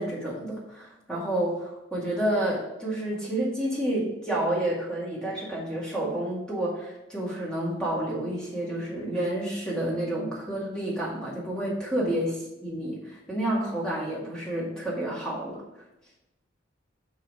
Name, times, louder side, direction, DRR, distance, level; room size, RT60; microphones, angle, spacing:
voice 1, 0.0-15.6, right 1 dB, 5° left, -6 dB, 2.0 m, -30 dB
5.4 x 4.9 x 5.5 m, 0.96 s
head